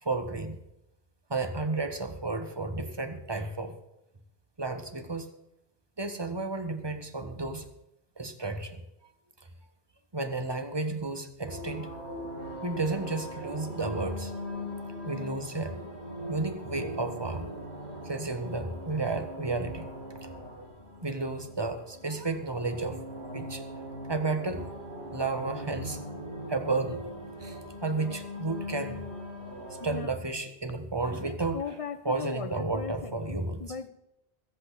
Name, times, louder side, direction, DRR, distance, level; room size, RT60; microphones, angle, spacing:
voice 1, 0.0-0.6 1.3-3.7 4.6-5.3 6.0-7.7 8.2-8.8 10.1-11.9 12.6-14.3 15.0-15.7 16.3-17.5 18.0-19.9 20.2-20.3 21.0-23.0 23.3-23.6 24.1-24.7 25.1-26.0 26.5-27.0 27.4-29.0 29.8-31.6 32.0-33.7, right 3 dB, 25° right, 7 dB, 1.4 m, -32 dB
sound 1, 11.4-30.0, equal, 80° right, 6.2 m, -40 dB
voice 2, 29.8-30.2 31.2-33.9, left 5 dB, 35° left, 12 dB, 0.9 m, -38 dB
23.0 x 8.2 x 4.2 m, 0.88 s
omnidirectional pair, 1.1 m